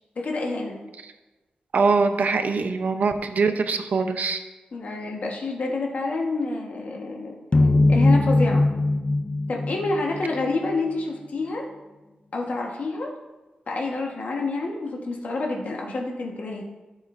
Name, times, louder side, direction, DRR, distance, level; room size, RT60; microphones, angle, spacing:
voice 1, 0.2-0.8 4.7-7.4 7.9-8.7 9.5-11.7 12.3-13.1 13.7-16.7, left 3 dB, 60° left, 0 dB, 1.3 m, -28 dB
voice 2, 1.7-4.4, right 4 dB, 60° right, 7 dB, 0.7 m, -23 dB
sound 1, 7.5-10.7, left 2 dB, 30° left, 0.5 m, -20 dB
13.5 x 7.3 x 2.6 m, 1.1 s
wide cardioid pair, 125°, 3 cm